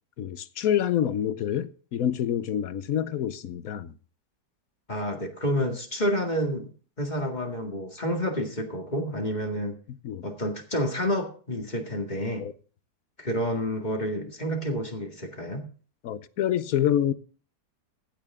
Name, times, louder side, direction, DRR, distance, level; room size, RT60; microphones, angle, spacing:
voice 1, 0.2-3.9 9.9-10.3 12.4-12.5 16.0-17.1, left 10 dB, 65° left, 1.1 m, -27 dB
voice 2, 4.9-6.7 7.0-9.8 10.2-12.5 13.2-15.7, equal, 25° left, 2.1 m, -29 dB
15.5 x 8.6 x 3.6 m
omnidirectional pair, 1.8 m